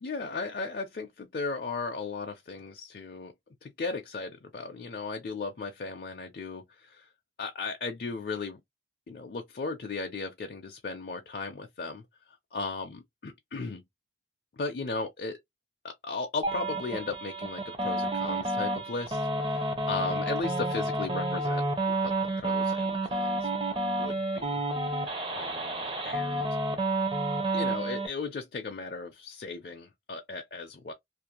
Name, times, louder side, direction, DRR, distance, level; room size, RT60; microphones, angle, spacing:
voice 1, 0.0-3.3 3.6-7.1 7.4-8.6 9.1-13.8 14.5-15.4 15.8-23.5 23.8-24.6 24.9-26.5 27.5-30.9, left 3 dB, 55° left, 0.4 m, -36 dB
sound 1, 16.4-28.1, right 2 dB, 30° right, 0.5 m, -30 dB
2.5 x 2.0 x 2.8 m
head